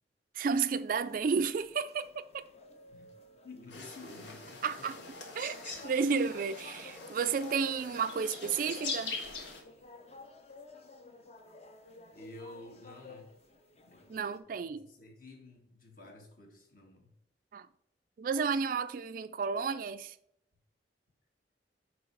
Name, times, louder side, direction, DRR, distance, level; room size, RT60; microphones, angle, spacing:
voice 1, 0.3-2.5 4.6-5.0 5.4-9.2 14.1-14.8 17.5-17.7 18.2-20.2, right 5 dB, 50° right, 0.3 m, -32 dB
sound 1, 0.7-14.4, left 3 dB, 35° left, 0.7 m, -54 dB
voice 2, 3.4-5.1 12.1-13.3 13.7-17.1, left 2 dB, 50° left, 1.6 m, -51 dB
sound 2, 3.7-9.6, left 3 dB, 90° left, 1.6 m, -42 dB
9.0 x 3.2 x 4.6 m
head